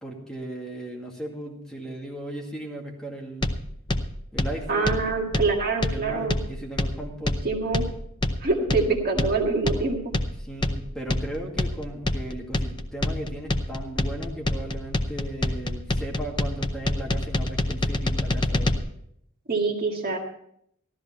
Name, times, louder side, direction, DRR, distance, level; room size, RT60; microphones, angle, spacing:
voice 1, 0.0-3.5 4.3-5.2 5.9-7.4 10.4-18.8, right 1 dB, 5° left, -2 dB, 2.2 m, -36 dB
sound 1, 3.4-18.8, left 2 dB, 20° left, 0.7 m, -27 dB
voice 2, 4.7-6.4 7.4-7.8 8.4-10.1 19.5-20.2, right 3 dB, 45° right, 0 dB, 1.8 m, -25 dB
13.5 x 13.5 x 4.4 m, 0.71 s
head